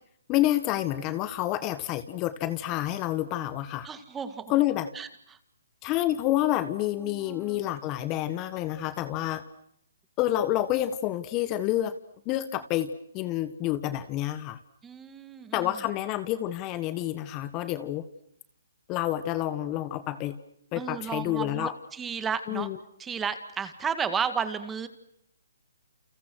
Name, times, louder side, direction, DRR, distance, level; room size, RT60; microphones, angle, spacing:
voice 1, 0.3-3.9 4.5-4.9 5.8-9.4 10.2-11.9 12.2-12.9 13.1-14.6 15.5-18.0 18.9-20.3 20.7-21.7 22.5-22.8, left 14 dB, 25° left, 13 dB, 1.5 m, -28 dB
voice 2, 3.8-4.5 4.9-5.1 7.0-7.6 14.8-15.7 20.8-22.7 23.0-24.9, right 6 dB, 10° right, 11 dB, 2.0 m, -33 dB
30.0 x 30.0 x 6.4 m, 0.72 s
hypercardioid pair, 150°, 0 cm